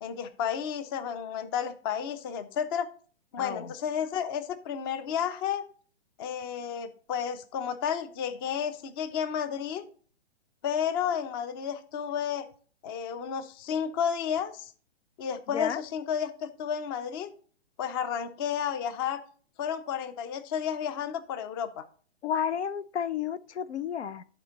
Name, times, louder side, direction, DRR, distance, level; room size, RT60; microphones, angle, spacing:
voice 1, 0.0-2.9 3.3-5.6 6.2-9.9 10.6-12.5 12.8-14.7 15.2-17.3 17.8-19.2 19.6-21.8, left 8 dB, 20° left, 0.5 m, -32 dB
voice 2, 3.4-3.7 15.5-15.8 22.2-24.2, left 8 dB, 85° left, 0.7 m, -31 dB
11.0 x 4.5 x 4.0 m
hypercardioid pair, 140°, 33 cm